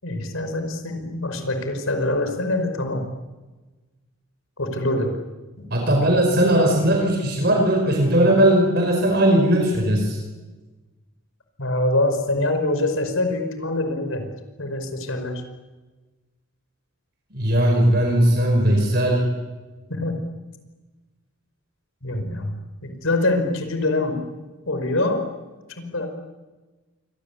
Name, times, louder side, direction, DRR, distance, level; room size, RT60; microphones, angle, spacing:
voice 1, 0.0-3.1 4.6-5.1 5.6-5.7 11.6-14.2 14.6-15.4 19.9-20.2 22.0-22.6 22.8-24.2 24.7-25.2 25.8-26.1, left 2 dB, 85° left, 6 dB, 5.3 m, -24 dB
voice 2, 5.7-10.2 17.3-19.2, right 1 dB, 50° right, 2 dB, 5.3 m, -18 dB
27.5 x 23.5 x 8.6 m, 1.2 s
head